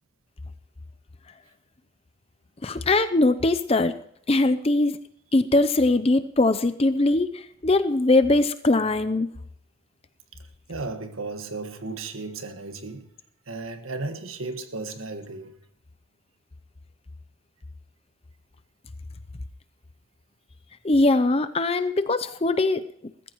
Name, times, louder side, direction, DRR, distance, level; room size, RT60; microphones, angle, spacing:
voice 1, 2.6-3.9 4.3-5.0 5.3-7.3 7.6-9.3 20.8-22.8, left 2 dB, 30° left, 0.6 m, -21 dB
voice 2, 10.7-13.1 13.5-15.6, right 3 dB, 80° right, 1.6 m, -35 dB
21.0 x 13.5 x 3.1 m
head